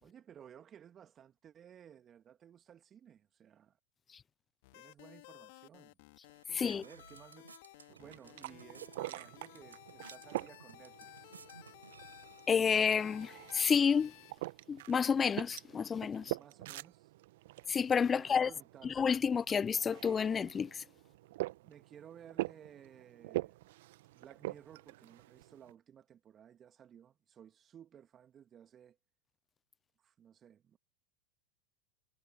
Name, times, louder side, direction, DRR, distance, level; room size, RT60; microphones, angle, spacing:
voice 1, 0.0-3.8 4.7-6.0 6.7-7.5 7.9-11.3 16.2-17.1 18.1-19.0 21.6-23.7 24.1-29.0 30.0-30.8, right 9 dB, 30° right, 2.1 m, -57 dB
sound 1, 4.6-14.4, left 24 dB, 60° left, 3.1 m, -56 dB
sound 2, 6.2-13.1, right 5 dB, 90° right, 7.4 m, -59 dB
voice 2, 6.5-6.8 12.5-14.1 14.7-16.4 17.7-18.5 18.8-20.8, left 6 dB, 20° left, 0.4 m, -30 dB
sound 3, 7.9-25.7, right 17 dB, 65° right, 1.3 m, -45 dB
hypercardioid pair, 95°, 0 cm